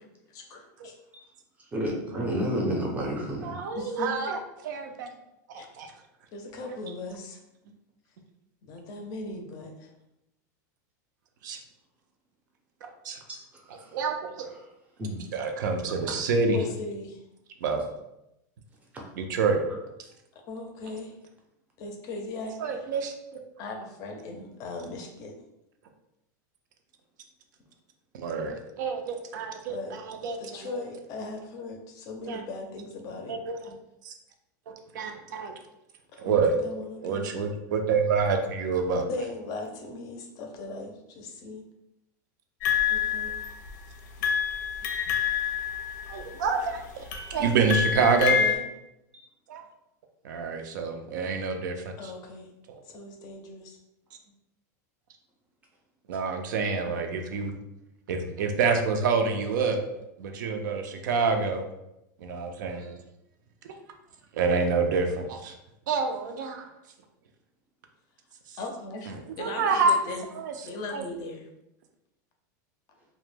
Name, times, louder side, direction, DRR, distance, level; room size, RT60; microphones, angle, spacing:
voice 1, 0.3-1.0 3.8-4.1 5.5-5.7 6.3-7.4 8.6-9.9 16.5-17.2 20.5-21.1 21.8-22.9 23.6-25.3 29.7-29.9 30.4-33.4 36.1-37.3 39.1-41.7 42.9-43.4 48.3-48.6 52.0-52.5 52.8-53.8 68.6-70.3 70.6-71.5, left 3 dB, 35° left, 2 dB, 0.4 m, -38 dB
voice 2, 1.7-3.6 15.0-15.2, equal, 15° right, -1 dB, 0.5 m, -29 dB
voice 3, 3.4-4.4 4.6-5.1 5.5-5.9 6.6-6.8 11.4-11.6 12.8-13.2 13.7-14.5 15.3-16.6 17.6-17.8 19.1-19.6 22.6-23.1 28.1-30.7 32.3-32.4 33.3-33.7 34.0-34.1 34.7-35.5 36.2-36.5 37.0-39.1 46.1-48.4 49.5-49.6 50.2-52.1 52.7-52.8 56.1-57.6 58.1-59.8 60.2-61.6 62.2-63.0 63.6-63.7 64.3-65.5 65.9-66.7 68.5-68.6 69.1-70.0 70.4-70.5 70.9-71.0, right 4 dB, 80° right, 5 dB, 0.4 m, -27 dB
sound 1, 42.6-43.8 44.2-46.5 47.1-48.6, left 8 dB, 90° left, 0.5 m, -27 dB
2.2 x 2.0 x 3.2 m, 0.87 s
supercardioid pair, 150°, 10 cm